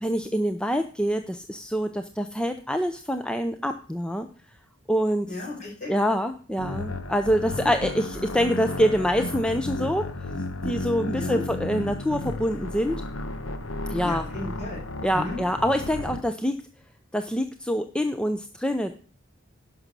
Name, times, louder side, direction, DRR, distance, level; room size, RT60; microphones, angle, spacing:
voice 1, 0.0-4.3 4.9-5.4 5.9-10.0 10.6-13.0 13.9-14.3 15.0-16.6 17.1-18.9, equal, 5° left, 8 dB, 0.5 m, -25 dB
voice 2, 5.3-5.9 7.5-7.7 11.1-11.4 14.0-14.8 15.1-15.4, left 2 dB, 40° left, -3 dB, 5.8 m, -34 dB
sound 1, 6.6-16.2, left 2 dB, 85° left, 1.2 m, -33 dB
11.0 x 6.1 x 6.7 m, 0.42 s
head